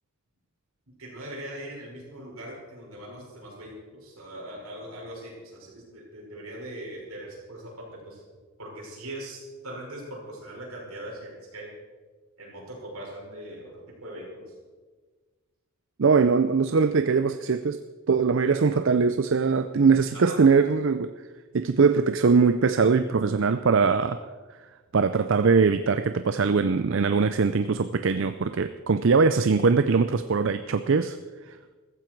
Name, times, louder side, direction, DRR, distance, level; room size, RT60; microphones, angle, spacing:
voice 1, 0.9-8.2 8.6-11.7 12.4-14.5 20.1-20.5, right 1 dB, 80° right, -3 dB, 5.8 m, -41 dB
voice 2, 16.0-17.8 18.1-21.1 21.5-24.2 24.9-31.2 31.5-31.6, right 5 dB, 60° right, 10 dB, 0.5 m, -21 dB
15.0 x 14.5 x 4.6 m, 1.4 s
head